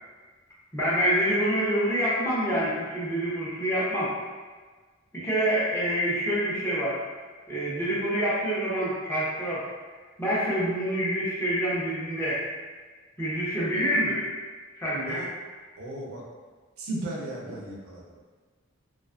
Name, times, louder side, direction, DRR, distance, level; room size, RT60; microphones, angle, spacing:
voice 1, 0.7-4.1 5.1-7.0 7.5-9.7 10.2-12.4 13.2-14.2 14.7-15.3, equal, 10° left, -9 dB, 0.6 m, -26 dB
voice 2, 15.8-16.2 16.8-18.0, right 1 dB, 85° right, -3 dB, 0.6 m, -35 dB
2.4 x 2.3 x 2.4 m, 1.4 s
head